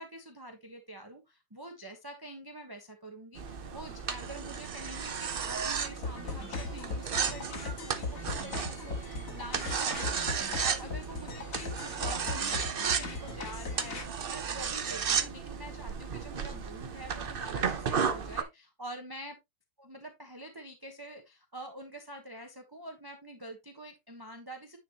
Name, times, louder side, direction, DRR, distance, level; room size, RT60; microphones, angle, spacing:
voice 1, 0.0-10.3 10.6-19.4 19.8-24.8, right 1 dB, 15° right, 0.8 m, -46 dB
sound 1, 3.4-18.4, right 6 dB, 75° right, 0.5 m, -34 dB
sound 2, 6.0-14.0, left 4 dB, 45° left, 2.0 m, -39 dB
9.8 x 5.6 x 2.9 m
omnidirectional pair, 2.2 m